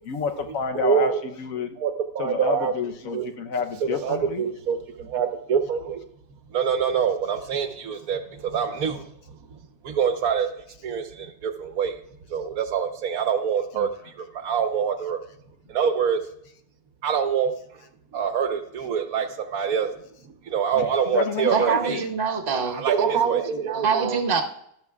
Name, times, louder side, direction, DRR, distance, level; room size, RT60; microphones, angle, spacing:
voice 1, 0.1-1.7 2.2-4.4 13.8-13.9 20.8-20.9 21.1-22.0, left 5 dB, 60° left, 6 dB, 1.2 m, -29 dB
voice 2, 0.7-1.2 1.7-2.7 3.1-3.3 3.8-6.0 6.5-10.5 10.8-12.0 12.3-15.2 15.7-16.2 17.0-17.8 18.1-22.0 22.7-24.3, right 7 dB, 60° right, 7 dB, 1.3 m, -25 dB
voice 3, 21.5-22.8 23.7-24.4, right 5 dB, 40° right, 2 dB, 1.3 m, -24 dB
16.0 x 12.0 x 2.3 m, 0.71 s
omnidirectional pair, 1.8 m